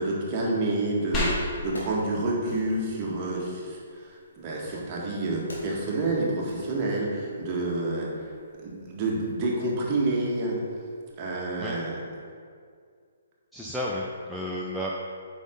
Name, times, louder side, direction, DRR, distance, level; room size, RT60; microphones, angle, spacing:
voice 1, 0.0-8.1 8.6-10.6 11.2-12.0, right 2 dB, 30° right, -4 dB, 1.8 m, -28 dB
Wood, 0.9-1.0 1.4-3.1 4.0-7.4 7.7-7.8, left 1 dB, 70° left, 2.0 m, -46 dB
sound 1, 1.1-11.1, left 1 dB, 20° left, 1.7 m, -40 dB
voice 2, 13.5-14.9, equal, ahead, -6 dB, 0.5 m, -32 dB
8.2 x 5.5 x 3.9 m, 2.2 s
figure-of-eight pair, 130°, 0 cm